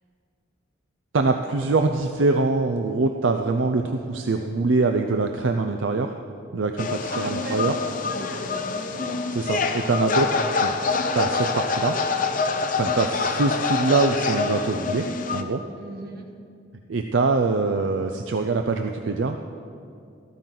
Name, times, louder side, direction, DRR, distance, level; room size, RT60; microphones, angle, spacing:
voice 1, 1.1-6.1 6.5-7.7 9.3-10.7 11.1-12.0 12.8-15.0 15.3-15.6 16.9-19.4, right 3 dB, 70° right, 5 dB, 0.5 m, -23 dB
sound 1, 6.8-15.4, left 4 dB, 40° left, 0.7 m, -26 dB
voice 2, 7.1-9.2 15.8-16.3, right 1 dB, 50° right, 1 dB, 1.4 m, -37 dB
13.5 x 13.5 x 3.9 m, 2.4 s
head